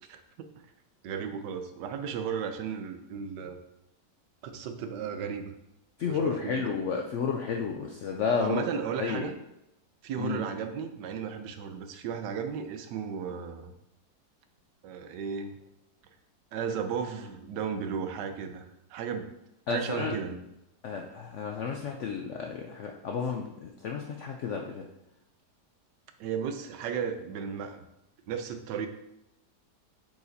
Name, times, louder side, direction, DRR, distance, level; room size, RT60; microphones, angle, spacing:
voice 1, 0.1-0.5 1.0-3.6 4.5-5.5 6.0-6.7 8.4-9.3 10.0-13.7 14.8-15.6 16.5-18.6 18.9-19.3 19.7-20.4 26.2-27.8 28.3-28.9, right 7 dB, 85° right, 8 dB, 1.3 m, -34 dB
voice 2, 6.0-8.6 9.0-9.3 10.2-10.4 19.7-20.1 20.8-24.8, left 5 dB, 70° left, 2 dB, 0.7 m, -31 dB
7.5 x 4.8 x 2.7 m, 0.86 s
omnidirectional pair, 1.8 m